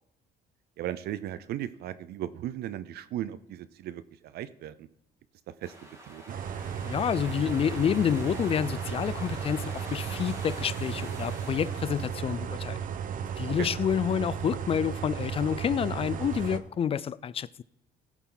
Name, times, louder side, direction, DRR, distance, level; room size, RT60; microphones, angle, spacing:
voice 1, 0.8-4.9 5.6-6.4 13.6-13.7, right 12 dB, 70° right, 0.6 m, -37 dB
sound 1, 5.6-12.9, right 1 dB, 15° right, 2.8 m, -45 dB
sound 2, 6.3-16.6, right 8 dB, 55° right, 1.0 m, -35 dB
voice 2, 6.8-12.8 13.4-17.5, left 8 dB, 35° left, 0.4 m, -28 dB
16.5 x 7.3 x 3.9 m
cardioid pair, 110°, 17 cm